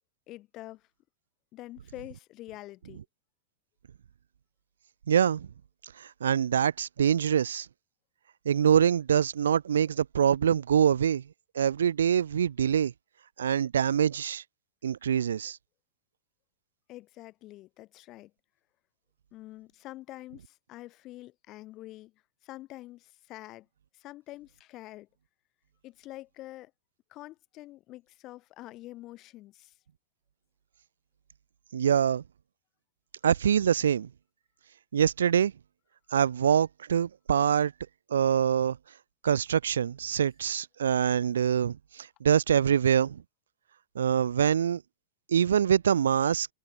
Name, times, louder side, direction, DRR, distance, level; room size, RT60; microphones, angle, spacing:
voice 1, 0.3-0.8 1.5-3.0 16.9-18.3 19.3-22.1 22.4-23.7 23.9-25.1 25.8-26.7 27.1-29.7, left 17 dB, 40° left, 3.3 m, -46 dB
voice 2, 5.1-5.5 6.0-7.7 8.5-11.2 11.6-12.9 13.4-14.4 14.8-15.6 31.7-32.2 33.2-34.1 34.9-35.5 36.1-37.7 38.1-38.8 39.2-43.2 44.0-44.8 45.3-46.5, right 8 dB, 80° right, 0.4 m, -24 dB
hypercardioid pair, 115°, 0 cm